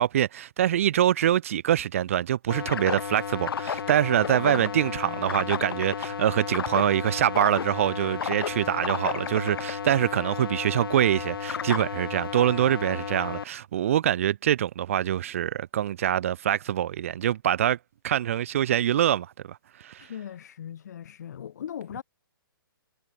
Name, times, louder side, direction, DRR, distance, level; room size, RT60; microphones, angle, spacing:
voice 1, 0.0-17.8 18.0-20.1, right 11 dB, 35° right, 0.8 m, -25 dB
sound 1, 2.5-13.4, left 7 dB, 75° left, 0.8 m, -33 dB
voice 2, 4.3-5.6 20.0-22.0, left 9 dB, 45° left, 3.4 m, -40 dB
hypercardioid pair, 170°, 12 cm